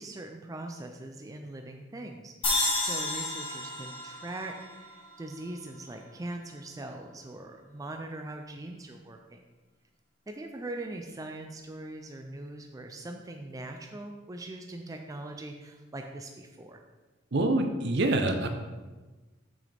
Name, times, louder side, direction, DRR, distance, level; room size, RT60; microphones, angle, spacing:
voice 1, 0.0-9.4 10.3-16.8, right 2 dB, 20° right, 4 dB, 0.4 m, -41 dB
sound 1, 2.4-5.7, left 2 dB, 25° left, 1.8 m, -32 dB
voice 2, 17.3-18.5, right 2 dB, 60° right, 6 dB, 0.7 m, -26 dB
6.2 x 6.2 x 3.4 m, 1.2 s
head